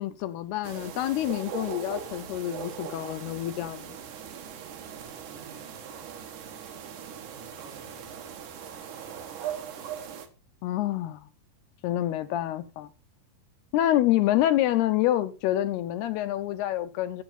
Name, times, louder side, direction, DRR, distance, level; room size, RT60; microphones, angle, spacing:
voice 1, 0.0-4.0 10.6-11.3 11.8-12.9 13.7-17.2, left 13 dB, 75° left, 2.8 m, -27 dB
sound 1, 0.6-10.3, right 8 dB, 60° right, 2.4 m, -40 dB
voice 2, 4.9-9.4, right 3 dB, 80° right, 7.3 m, -54 dB
14.0 x 8.4 x 4.3 m
omnidirectional pair, 4.8 m